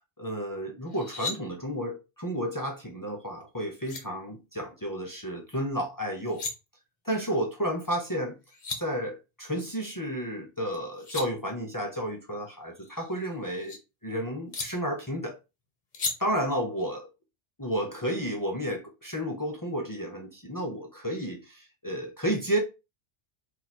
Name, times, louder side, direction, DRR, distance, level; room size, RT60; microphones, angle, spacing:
voice 1, 0.2-6.4 7.0-8.4 8.8-13.8 14.0-15.4 16.2-17.1 17.6-22.6, equal, 20° left, 0.7 m, -32 dB
sound 1, 0.9-1.4 3.4-3.5 3.8-4.0 6.1-6.5 8.2-8.3 8.5-8.8 10.7-11.3 12.8-13.8 14.5-14.7 15.9-16.1, left 3 dB, 45° left, 0.9 m, -35 dB
3.0 x 2.7 x 4.1 m
omnidirectional pair, 1.2 m